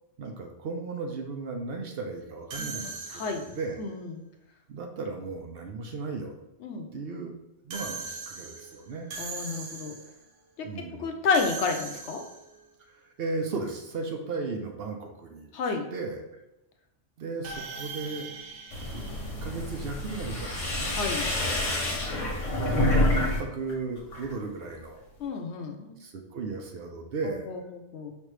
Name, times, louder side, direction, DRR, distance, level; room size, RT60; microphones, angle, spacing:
voice 1, 0.2-3.8 4.7-6.3 6.9-7.3 7.6-9.1 10.6-11.1 13.2-15.5 15.9-16.3 17.2-18.3 18.9-19.0 19.4-20.9 22.6-25.0 26.0-27.5, right 3 dB, 60° right, 3 dB, 0.8 m, -35 dB
sound 1, 2.5-3.8 7.7-10.2 11.3-12.6 17.4-20.0, right 4 dB, 80° right, 1.0 m, -40 dB
voice 2, 2.6-3.5 3.8-4.2 6.6-6.9 9.2-10.0 10.9-12.2 15.5-15.9 20.9-21.3 25.2-25.9 27.5-27.6 27.9-28.1, left 4 dB, 70° left, 4 dB, 0.9 m, -30 dB
sound 2, 18.7-23.4 23.7-24.3, left 1 dB, 90° left, 1.4 m, -28 dB
5.1 x 3.2 x 3.1 m, 0.92 s
omnidirectional pair, 1.3 m